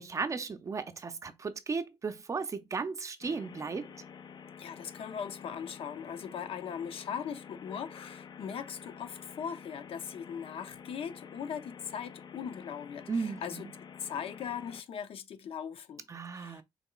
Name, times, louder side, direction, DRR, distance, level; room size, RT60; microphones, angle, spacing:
voice 1, 0.0-3.9 13.1-13.7 16.1-16.6, right 4 dB, 35° right, 0.5 m, -35 dB
sound 1, 3.2-14.8, left 7 dB, 50° left, 0.4 m, -49 dB
voice 2, 4.6-13.7 14.0-16.0 16.3-16.6, left 7 dB, 85° left, 0.7 m, -39 dB
5.7 x 3.7 x 2.3 m
wide cardioid pair, 150°, 9 cm